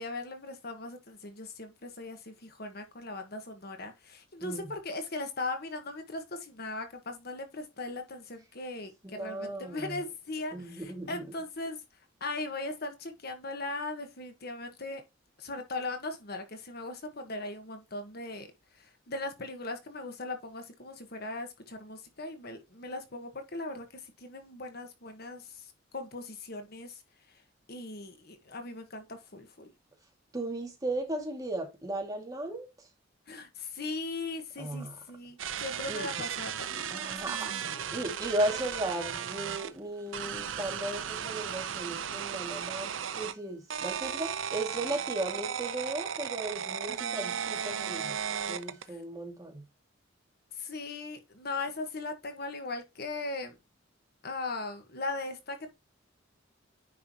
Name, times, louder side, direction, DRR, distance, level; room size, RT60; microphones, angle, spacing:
voice 1, 0.0-11.8 12.2-15.0 15.4-18.5 18.7-27.0 27.3-27.4 27.7-29.7 33.3-37.2 37.6-37.8 46.9-47.2 48.9-49.0 50.5-53.6 54.2-55.7, left 2 dB, 55° left, 1.4 m, -39 dB
voice 2, 9.0-10.0 10.5-11.2 30.3-32.7 34.6-34.9 35.9-36.1 36.9-48.1 48.5-49.6, right 1 dB, 20° right, 2.1 m, -36 dB
sound 1, 35.4-39.7 40.1-43.3 43.7-48.9, right 8 dB, 80° right, 0.7 m, -35 dB
9.6 x 5.5 x 2.9 m
head